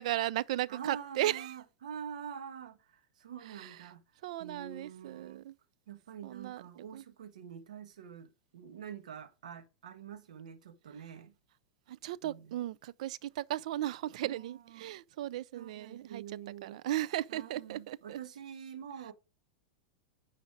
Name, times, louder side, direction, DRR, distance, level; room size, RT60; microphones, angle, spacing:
voice 1, 0.0-1.5 3.6-3.8 4.2-5.5 6.2-7.0 11.9-16.2 16.6-18.2, right 14 dB, 70° right, 0.5 m, -36 dB
voice 2, 0.7-4.0 4.4-5.4 5.9-11.3 12.2-12.7 14.2-14.9 15.5-16.8 17.3-19.1, right 8 dB, 85° right, 1.5 m, -46 dB
9.8 x 5.1 x 4.8 m
hypercardioid pair, 130°, 4 cm